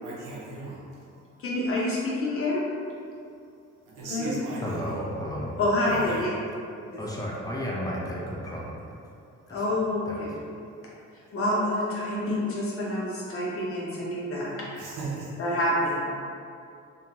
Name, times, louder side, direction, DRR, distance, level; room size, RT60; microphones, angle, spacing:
voice 1, 0.0-1.0 4.0-5.0 5.9-6.2 14.8-15.3, right 3 dB, 85° right, 0.8 m, -37 dB
voice 2, 1.4-2.6 4.1-4.4 5.6-6.4 6.8-7.0 9.5-10.6 11.3-14.5 15.4-16.0, left 1 dB, 45° left, 0.8 m, -27 dB
voice 3, 4.6-5.6 5.9-6.2 7.0-8.7 10.1-10.2, equal, 10° left, 0.4 m, -33 dB
2.5 x 2.3 x 3.0 m
cardioid pair, 90°, 30 cm